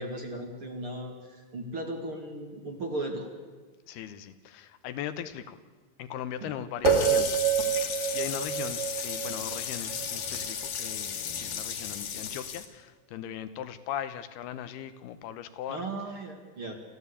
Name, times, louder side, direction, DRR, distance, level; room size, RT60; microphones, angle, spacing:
voice 1, 0.0-3.3 6.4-6.5 15.7-16.7, right 1 dB, 40° right, 2 dB, 2.4 m, -36 dB
voice 2, 3.9-5.6 6.0-7.4 7.7-15.8, left 10 dB, 80° left, 11 dB, 2.9 m, -39 dB
sound 1, 6.8-11.0, right 11 dB, 65° right, 2.2 m, -29 dB
Water tap faucet, 6.9-12.6, left 5 dB, 60° left, 3.4 m, -32 dB
28.5 x 15.0 x 8.4 m, 1.4 s
omnidirectional pair, 4.6 m